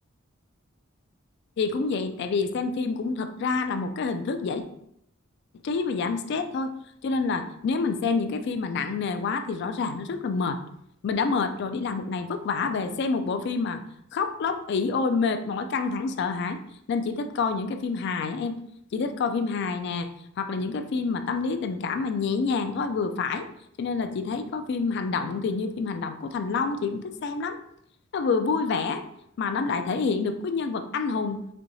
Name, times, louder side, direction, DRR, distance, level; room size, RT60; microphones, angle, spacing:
voice 1, 1.6-4.6 5.6-6.7 7.0-10.6 11.0-13.8 14.1-16.6 16.9-18.6 18.9-20.1 20.4-23.5 23.8-27.6 28.1-29.0 29.4-31.4, left 4 dB, 55° left, 8 dB, 0.3 m, -27 dB
4.4 x 2.7 x 2.6 m, 0.74 s
head